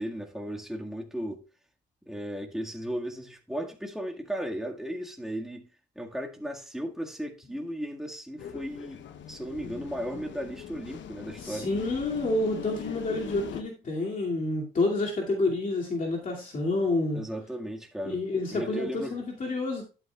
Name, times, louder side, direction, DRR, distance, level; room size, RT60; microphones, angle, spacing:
voice 1, 0.0-1.4 2.1-5.7 6.0-11.7 17.1-18.2 18.5-19.2, equal, ahead, 1.9 m, -35 dB
sound 1, 8.4-13.6, left 8 dB, 70° left, 0.9 m, -41 dB
voice 2, 11.4-17.2 18.0-19.8, left 2 dB, 40° left, 2.5 m, -29 dB
11.5 x 8.9 x 2.4 m
cardioid pair, 90°, 20 cm